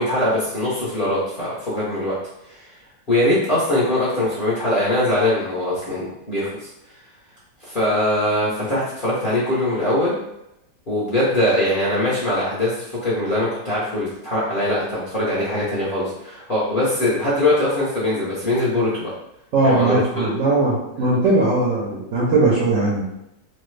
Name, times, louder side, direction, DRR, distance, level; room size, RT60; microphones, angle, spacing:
voice 1, 0.0-2.2 2.5-2.7 3.1-6.7 7.6-10.1 10.9-19.1 19.6-20.3 21.0-21.2, left 1 dB, 40° left, -9 dB, 0.7 m, -22 dB
voice 2, 19.5-23.0, right 2 dB, 65° right, -5 dB, 0.8 m, -19 dB
3.1 x 2.2 x 3.2 m, 0.84 s
omnidirectional pair, 2.0 m